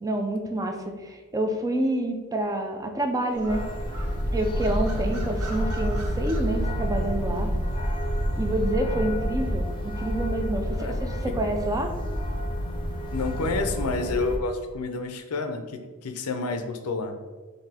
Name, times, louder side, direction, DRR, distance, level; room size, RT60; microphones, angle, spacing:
voice 1, 0.0-3.7 4.3-7.5 8.4-9.7 10.0-11.9, right 1 dB, 15° right, 4 dB, 0.4 m, -28 dB
sound 1, 3.3-9.5, equal, 75° right, 0.7 m, -29 dB
sound 2, 3.5-14.4, equal, 20° left, 0.6 m, -31 dB
voice 2, 4.8-5.2 10.7-11.0 11.3-11.4 13.1-17.1, left 3 dB, 80° left, 6 dB, 0.5 m, -30 dB
5.8 x 2.7 x 3.4 m, 1.3 s
head